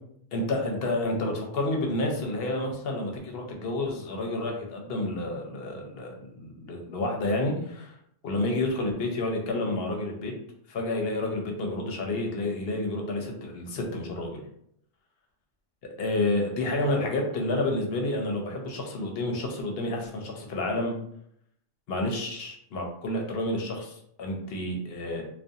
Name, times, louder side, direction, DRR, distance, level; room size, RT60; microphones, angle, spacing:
voice 1, 0.3-7.9 8.2-10.3 10.7-14.4 16.0-20.9 21.9-25.2, left 2 dB, 60° left, 1 dB, 0.8 m, -29 dB
2.5 x 2.2 x 2.6 m, 0.71 s
omnidirectional pair, 1.2 m